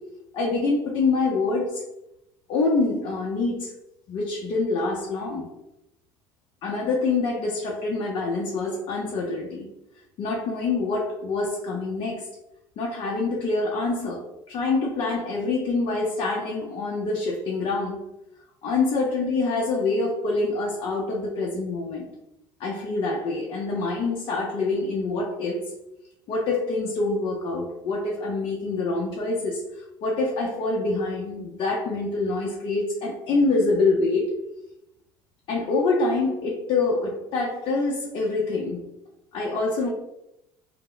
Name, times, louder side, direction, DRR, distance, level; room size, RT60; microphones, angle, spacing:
voice 1, 0.3-1.8 2.5-3.7 4.1-5.5 6.6-9.7 10.2-12.3 12.8-18.0 18.6-22.1 22.6-25.7 26.3-34.3 35.5-38.8 39.3-39.9, left 3 dB, 55° left, -3 dB, 0.6 m, -26 dB
2.0 x 2.0 x 3.7 m, 0.87 s
cardioid pair, 115°, 10 cm